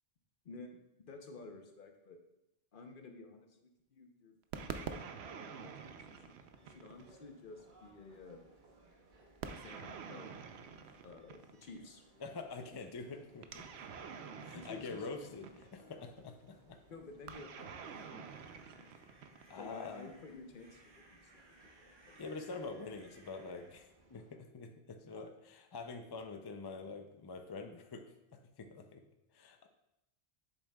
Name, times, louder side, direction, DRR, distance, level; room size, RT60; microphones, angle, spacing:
voice 1, 0.4-2.2 2.7-3.6 3.9-4.4 4.6-8.4 9.5-10.3 11.0-12.0 14.5-15.3 16.9-19.1 19.6-22.2, left 3 dB, 55° left, 4 dB, 0.9 m, -53 dB
sound 1, 4.5-7.2 9.4-11.8 13.4-15.9 17.3-19.7, right 6 dB, 85° right, 0.9 m, -47 dB
sound 2, 5.5-24.4, right 2 dB, 50° right, 1.0 m, -65 dB
voice 2, 12.2-13.7 14.4-16.8 19.5-20.1 22.2-28.1 28.3-29.0 29.3-29.7, left 4 dB, 40° left, 6 dB, 0.3 m, -46 dB
sound 3, 18.1-23.7, right 2 dB, 30° right, 0.7 m, -64 dB
8.1 x 7.0 x 2.3 m, 0.89 s
omnidirectional pair, 1.1 m